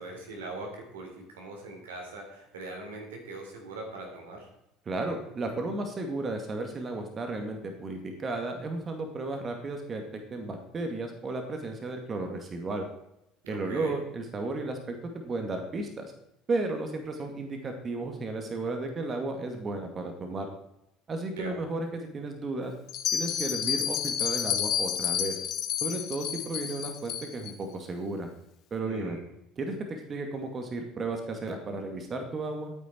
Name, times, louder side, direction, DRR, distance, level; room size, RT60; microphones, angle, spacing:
voice 1, 0.0-4.5 13.4-14.0 21.4-21.6 28.8-29.2, right 2 dB, 80° right, 1 dB, 3.6 m, -41 dB
voice 2, 4.9-12.9 13.5-16.1 16.5-20.5 21.1-22.7 23.1-25.4 25.8-28.3 28.7-29.2 29.6-32.7, right 2 dB, 35° right, 4 dB, 2.2 m, -34 dB
Bell, 22.9-27.5, left 9 dB, 55° left, 1.5 m, -30 dB
12.5 x 9.2 x 4.5 m, 0.85 s
hypercardioid pair, 65°, 0 cm